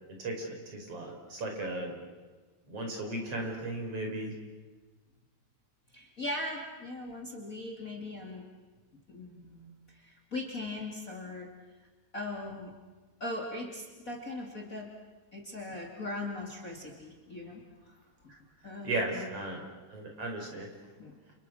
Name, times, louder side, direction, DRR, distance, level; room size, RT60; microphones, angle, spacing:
voice 1, 0.1-2.0 2.7-4.3 18.3-18.4 18.8-19.6 19.9-20.7, right 2 dB, 50° right, 2 dB, 6.0 m, -36 dB
voice 2, 5.9-8.4 9.1-11.5 12.1-12.7 13.2-14.9 15.3-18.0 18.6-19.3 21.0-21.1, left 2 dB, 25° left, 0 dB, 2.9 m, -39 dB
29.5 x 29.5 x 6.4 m, 1.3 s
omnidirectional pair, 3.5 m